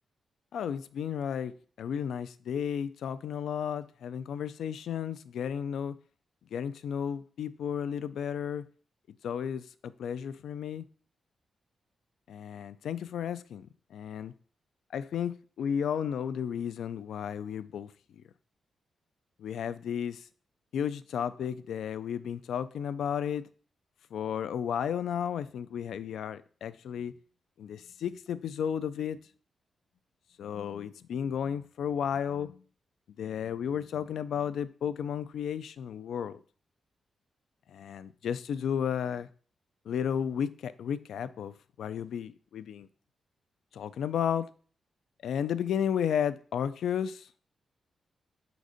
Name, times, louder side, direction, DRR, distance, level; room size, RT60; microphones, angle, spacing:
voice 1, 0.5-1.5 1.8-6.0 6.5-8.6 9.2-10.8 12.3-14.3 14.9-17.9 19.4-20.2 20.7-23.4 24.1-27.1 27.6-29.2 30.4-32.6 33.2-36.4 37.7-39.3 39.9-41.5 41.8-42.9 43.7-44.5 45.2-47.2, left 8 dB, 90° left, 0.3 m, -33 dB
5.1 x 4.0 x 4.9 m
wide cardioid pair, 145°, 0 cm